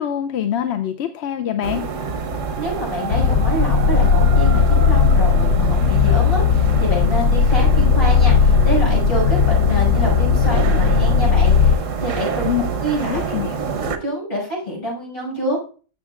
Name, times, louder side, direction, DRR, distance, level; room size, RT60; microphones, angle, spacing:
voice 1, 0.0-1.8 12.5-12.6 13.1-13.6, left 10 dB, 65° left, 8 dB, 0.8 m, -24 dB
sound 1, 1.6-14.0, right 5 dB, 85° right, 1.3 m, -27 dB
voice 2, 2.5-13.4 13.8-15.6, equal, 45° left, -4 dB, 5.9 m, -27 dB
sound 2, 3.1-11.8, left 6 dB, 90° left, 1.0 m, -16 dB
13.0 x 7.4 x 2.4 m, 0.39 s
omnidirectional pair, 1.3 m